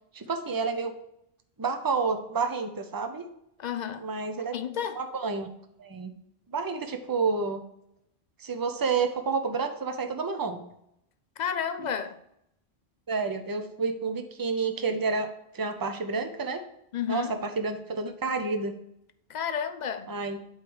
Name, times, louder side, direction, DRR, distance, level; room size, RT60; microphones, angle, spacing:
voice 1, 0.1-0.9 1.6-3.3 4.0-4.5 5.0-5.5 5.8-6.1 6.5-7.6 8.4-10.6 13.1-15.3 15.5-16.6 17.1-18.7 20.1-20.4, right 4 dB, 25° right, 0.6 m, -29 dB
voice 2, 3.6-4.1 4.5-5.0 11.4-12.2 16.9-17.4 19.3-20.1, left 8 dB, 55° left, 0.5 m, -31 dB
8.1 x 3.2 x 6.2 m
omnidirectional pair, 1.1 m